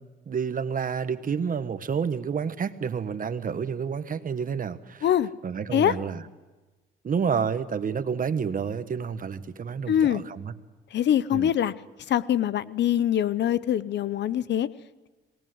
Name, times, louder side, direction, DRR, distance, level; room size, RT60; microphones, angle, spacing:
voice 1, 0.0-5.1 5.4-6.2 7.0-10.5 11.3-11.5, right 6 dB, 45° right, 11 dB, 1.4 m, -29 dB
voice 2, 9.9-10.2 10.9-11.7 12.1-14.7, left 10 dB, 60° left, 18 dB, 0.7 m, -23 dB
26.5 x 19.0 x 7.9 m, 1.2 s
cardioid pair, 90°, 20 cm